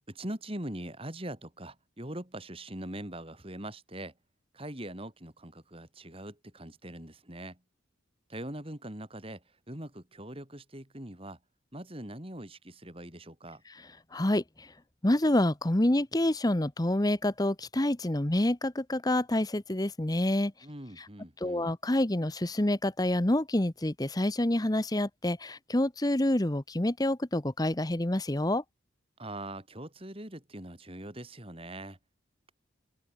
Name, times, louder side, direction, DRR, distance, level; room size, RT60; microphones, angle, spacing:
voice 1, 0.0-4.1 4.5-7.6 8.3-11.4 11.7-13.6 20.6-21.7 29.2-32.0, right 1 dB, 30° right, 4.2 m, -42 dB
voice 2, 14.1-14.4 15.0-20.5 21.4-28.6, left 1 dB, 20° left, 0.9 m, -27 dB
open air
head